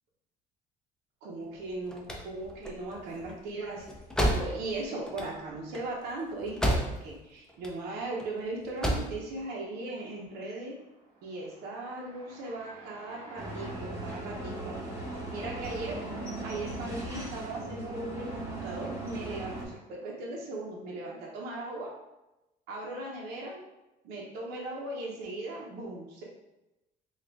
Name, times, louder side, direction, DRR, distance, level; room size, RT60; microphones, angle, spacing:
voice 1, 1.2-3.9 4.3-10.8 11.2-14.8 15.3-16.0 16.4-21.9 22.7-23.6 24.0-26.2, right 2 dB, 85° right, -2 dB, 0.8 m, -38 dB
sound 1, 1.6-7.2 7.5-8.3 8.6-9.2, equal, 5° left, 0.5 m, -31 dB
Train, 9.3-13.7, right 1 dB, 40° right, 1.5 m, -53 dB
sound 2, 13.4-19.7, right 2 dB, 15° right, 1.1 m, -38 dB
3.7 x 2.4 x 3.4 m, 0.95 s
cardioid pair, 110°, 17 cm